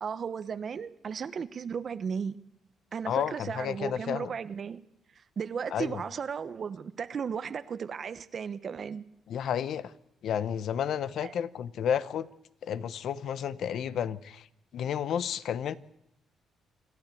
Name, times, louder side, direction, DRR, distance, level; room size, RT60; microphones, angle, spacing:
voice 1, 0.0-2.4 2.9-4.8 5.4-9.0 11.2-11.3, right 6 dB, 50° right, 1.1 m, -35 dB
voice 2, 3.0-4.3 5.7-6.0 9.3-9.9 10.2-12.3 12.6-14.5 14.7-15.7, left 9 dB, 70° left, 0.9 m, -31 dB
27.0 x 12.0 x 8.5 m
cardioid pair, 90°, 0 cm